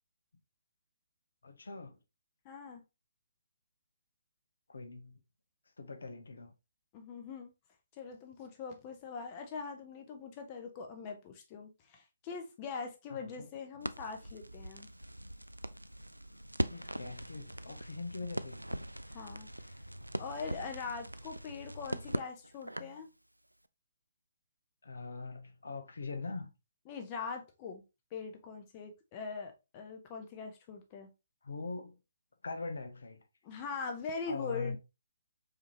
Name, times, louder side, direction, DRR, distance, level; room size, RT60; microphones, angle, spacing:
voice 1, 1.4-2.0 4.7-5.2 5.8-6.5 13.1-13.5 16.7-18.6 24.8-26.5 31.4-32.0 32.4-33.2 34.3-34.8, left 3 dB, 65° left, 0.7 m, -42 dB
voice 2, 2.4-2.8 6.9-7.5 8.0-14.9 19.1-19.5 20.2-23.1 26.9-27.8 28.1-31.1 33.4-34.8, left 5 dB, 25° left, 0.7 m, -42 dB
Crackle, 13.8-23.0, right 1 dB, 90° right, 0.3 m, -41 dB
4.9 x 2.8 x 2.9 m
figure-of-eight pair, 135°, 0 cm